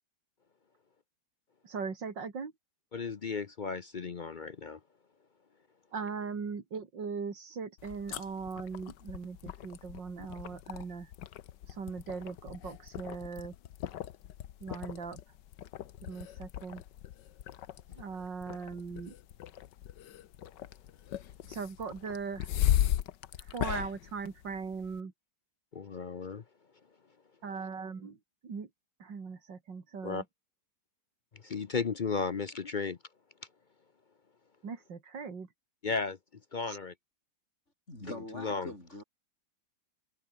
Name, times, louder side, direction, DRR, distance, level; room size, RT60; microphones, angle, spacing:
voice 1, 1.6-2.5 5.9-11.1 11.7-13.6 14.6-15.2 16.0-16.8 18.0-19.1 21.5-22.5 23.5-25.1 27.4-28.2 28.4-28.7 29.0-30.2 34.6-35.5 36.7-36.8, right 5 dB, 80° right, 3.5 m, -39 dB
voice 2, 2.9-4.8 25.7-26.4 30.0-30.2 31.3-33.0 35.8-36.2 36.5-36.9 38.1-38.7, left 5 dB, 55° left, 0.5 m, -35 dB
sound 1, 7.8-25.0, left 11 dB, 75° left, 1.5 m, -37 dB
voice 3, 37.9-39.0, left 1 dB, 40° left, 8.0 m, -43 dB
omnidirectional pair, 1.9 m